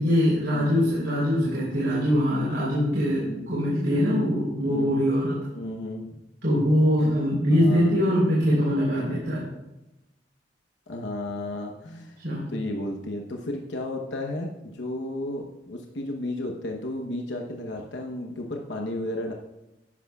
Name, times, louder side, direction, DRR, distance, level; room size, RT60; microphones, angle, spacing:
voice 1, 0.0-5.3 6.4-9.4 12.2-12.4, equal, 70° right, -6 dB, 3.6 m, -23 dB
voice 2, 3.2-3.6 4.6-4.9 5.5-6.1 7.5-7.9 10.9-12.2 12.5-19.3, left 1 dB, 85° left, 1 dB, 1.0 m, -33 dB
13.5 x 11.0 x 2.4 m, 0.94 s
head